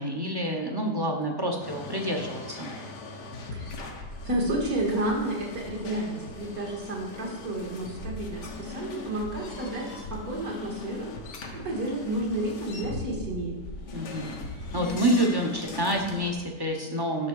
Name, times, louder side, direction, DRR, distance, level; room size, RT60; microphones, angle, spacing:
voice 1, 0.0-2.7 13.9-14.3 14.7-17.3, equal, 20° right, 2 dB, 0.9 m, -28 dB
sound 1, 1.6-16.3, left 3 dB, 90° left, 1.8 m, -39 dB
voice 2, 4.2-11.1 11.5-13.5, right 1 dB, 60° right, -2 dB, 2.5 m, -31 dB
9.8 x 6.6 x 4.8 m, 1.4 s
omnidirectional pair, 1.7 m